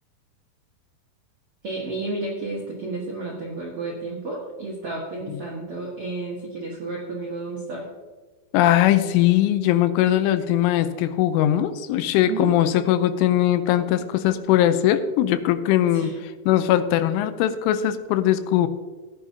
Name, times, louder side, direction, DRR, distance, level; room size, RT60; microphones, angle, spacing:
voice 1, 1.6-7.9 12.3-12.6 15.9-16.2, right 3 dB, 75° right, -4 dB, 1.3 m, -32 dB
voice 2, 8.5-16.1 16.5-18.7, left 12 dB, 85° left, 11 dB, 3.1 m, -20 dB
16.5 x 10.0 x 2.8 m, 1.3 s
omnidirectional pair, 5.6 m